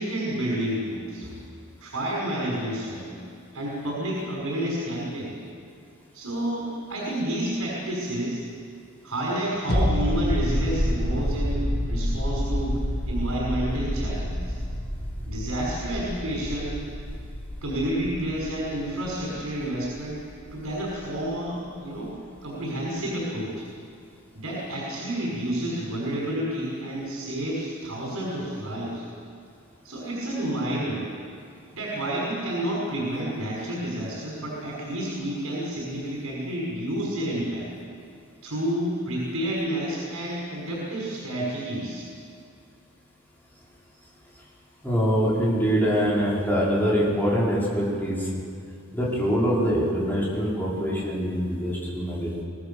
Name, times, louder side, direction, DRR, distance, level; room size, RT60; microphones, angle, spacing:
voice 1, 0.0-1.4 1.8-3.3 3.5-5.3 6.1-8.4 9.0-12.8 13.1-14.6 15.3-16.8 17.6-20.2 20.5-22.1 22.4-23.6 24.3-29.0 29.8-31.1 31.7-37.7 38.4-42.1, right 1 dB, 85° right, -4 dB, 5.5 m, -30 dB
sound 1, 9.7-21.0 21.3-21.4, equal, 50° left, 2.4 m, -29 dB
voice 2, 44.8-48.4 48.9-52.4, equal, 10° left, -7 dB, 5.3 m, -24 dB
24.5 x 17.0 x 7.1 m, 2.3 s
head